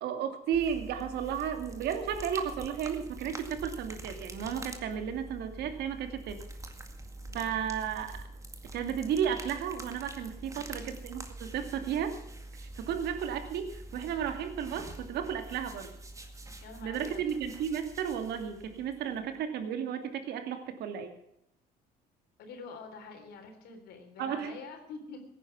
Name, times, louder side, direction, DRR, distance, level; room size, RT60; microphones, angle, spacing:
voice 1, 0.0-6.4 7.3-8.2 8.7-12.2 12.6-15.9 16.8-21.1 24.2-24.6, right 8 dB, 75° right, 7 dB, 2.5 m, -33 dB
sound 1, 0.5-19.4, right 2 dB, 20° right, 2.0 m, -45 dB
voice 2, 7.2-7.6 10.5-10.7 16.6-17.2 22.4-25.2, left 4 dB, 75° left, 5 dB, 3.7 m, -46 dB
17.0 x 10.0 x 6.1 m, 0.79 s
cardioid pair, 110°, 17 cm